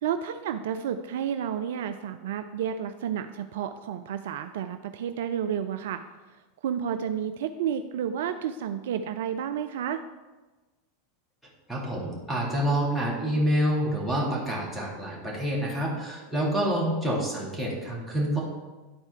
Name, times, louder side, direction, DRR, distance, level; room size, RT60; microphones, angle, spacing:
voice 1, 0.0-6.0 6.6-10.0, right 8 dB, 60° right, 9 dB, 0.4 m, -31 dB
voice 2, 11.7-18.4, equal, 5° left, -4 dB, 2.8 m, -27 dB
11.0 x 4.3 x 4.5 m, 1.2 s
figure-of-eight pair, 85°, 0 cm